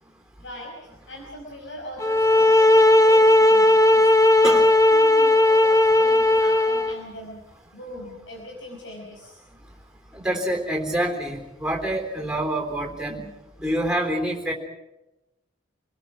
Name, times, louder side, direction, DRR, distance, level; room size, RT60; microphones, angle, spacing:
voice 1, 0.4-4.5 4.9-7.4 7.7-9.4, left 1 dB, 70° left, -1 dB, 5.3 m, -40 dB
sound 1, 2.0-7.0, left 1 dB, 15° left, 0.8 m, -16 dB
voice 2, 10.1-13.3 13.6-14.5, right 1 dB, 5° right, 1 dB, 3.7 m, -26 dB
27.5 x 20.5 x 6.1 m, 0.98 s
head